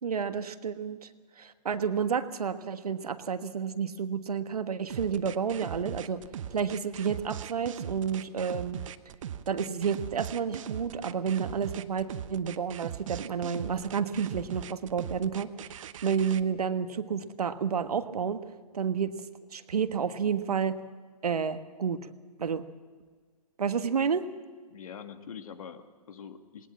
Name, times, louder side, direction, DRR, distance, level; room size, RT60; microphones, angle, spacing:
voice 1, 0.0-1.1 1.4-6.2 6.5-8.8 9.5-15.5 16.0-18.4 18.7-19.1 19.5-20.8 21.2-22.1 22.4-22.7 23.6-24.3, right 6 dB, 70° right, 10 dB, 1.4 m, -30 dB
sound 1, 4.9-16.4, right 10 dB, 55° right, 1.0 m, -40 dB
voice 2, 24.7-26.7, left 7 dB, 60° left, 8 dB, 2.1 m, -44 dB
20.0 x 19.0 x 7.4 m, 1.5 s
figure-of-eight pair, 125°, 20 cm